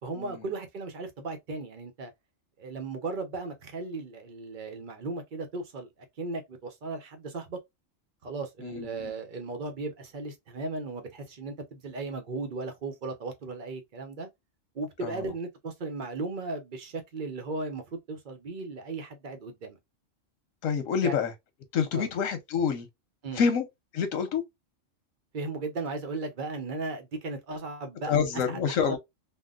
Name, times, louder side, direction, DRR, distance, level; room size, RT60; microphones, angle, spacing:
voice 1, 0.0-2.1 2.6-5.9 6.2-7.6 8.2-14.3 14.7-19.8 21.0-21.2 21.9-22.1 23.2-23.4 25.3-28.2 28.5-29.0, right 3 dB, 45° right, 0.8 m, -36 dB
voice 2, 8.6-9.1 15.0-15.3 20.6-21.3 21.7-22.9 23.4-23.6 23.9-24.4 28.1-29.0, left 6 dB, 85° left, 1.2 m, -27 dB
3.6 x 2.3 x 2.4 m
omnidirectional pair, 1.3 m